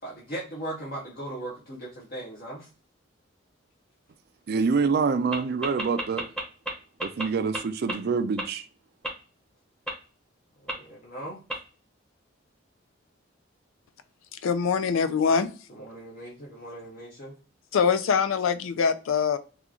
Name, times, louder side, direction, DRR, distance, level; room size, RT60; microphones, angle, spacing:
voice 1, 0.0-2.7 10.6-11.4 15.7-17.3, right 1 dB, 45° left, 0.8 m, -38 dB
voice 2, 4.5-6.2 7.0-8.6, right 5 dB, 50° right, 0.3 m, -26 dB
sound 1, 5.3-6.7 7.0-7.2 7.5-7.6 7.9-8.0 8.4-8.5 9.0-9.1 9.9-10.0 10.7-10.8 11.5-11.6, right 1 dB, 5° left, 0.8 m, -29 dB
voice 3, 14.3-15.5 17.7-19.4, left 6 dB, 80° left, 0.4 m, -23 dB
2.9 x 2.4 x 3.7 m
head